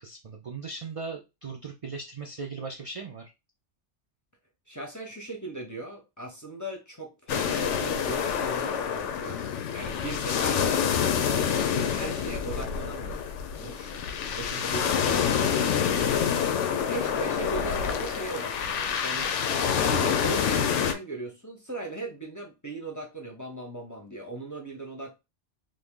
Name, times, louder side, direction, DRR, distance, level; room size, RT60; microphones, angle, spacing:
voice 1, 0.0-3.3 14.6-14.8, right 4 dB, 60° right, 0.3 m, -38 dB
voice 2, 4.7-9.4 9.7-10.9 11.5-13.2 13.5-13.9 14.3-16.2 16.9-19.4 19.8-25.1, right 2 dB, 20° left, 0.6 m, -38 dB
sound 1, 7.3-20.9, left 7 dB, 85° left, 0.9 m, -27 dB
2.9 x 2.5 x 3.6 m
omnidirectional pair, 1.2 m